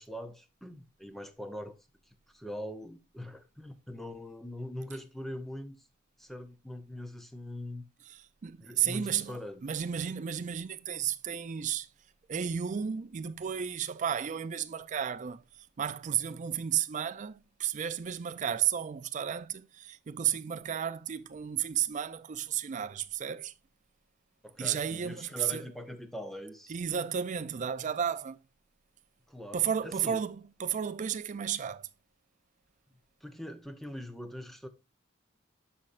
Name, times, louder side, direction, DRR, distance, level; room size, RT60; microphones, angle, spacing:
voice 1, 0.0-1.8 2.3-5.9 6.2-7.8 8.6-9.7 24.4-26.7 29.3-30.2 33.2-34.7, left 1 dB, ahead, 0.7 m, -42 dB
voice 2, 8.1-11.9 12.3-15.4 15.8-23.5 24.6-25.7 26.7-28.4 29.5-31.9, right 9 dB, 40° right, 0.4 m, -33 dB
12.0 x 4.3 x 2.5 m
head